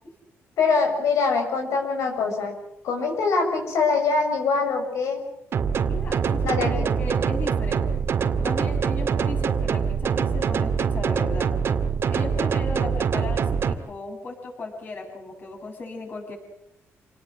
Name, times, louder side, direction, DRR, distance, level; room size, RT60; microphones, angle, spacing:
voice 1, 0.6-2.5 2.8-5.2 6.4-6.9, left 4 dB, 85° left, 2 dB, 6.5 m, -23 dB
sound 1, 5.5-13.7, right 6 dB, 55° right, 1.9 m, -24 dB
voice 2, 5.8-8.1 8.4-11.5 12.1-16.4, left 2 dB, 40° left, 1 dB, 7.3 m, -36 dB
28.0 x 19.0 x 7.8 m, 0.81 s
cardioid pair, 135°, 5 cm